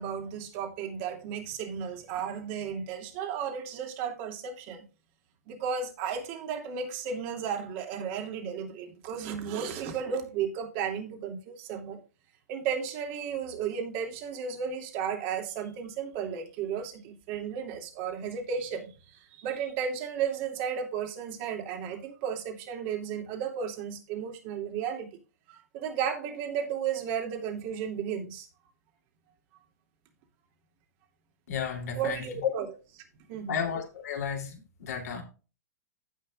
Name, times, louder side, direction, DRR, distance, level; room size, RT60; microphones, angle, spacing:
voice 1, 0.0-4.8 5.5-12.0 12.5-18.9 19.3-25.1 25.5-28.5 31.9-32.7 33.3-33.6, right 7 dB, 45° right, 2.7 m, -34 dB
voice 2, 31.5-32.5 33.5-35.2, left 7 dB, 70° left, 3.1 m, -33 dB
15.5 x 5.7 x 2.5 m
hypercardioid pair, 110°, 9 cm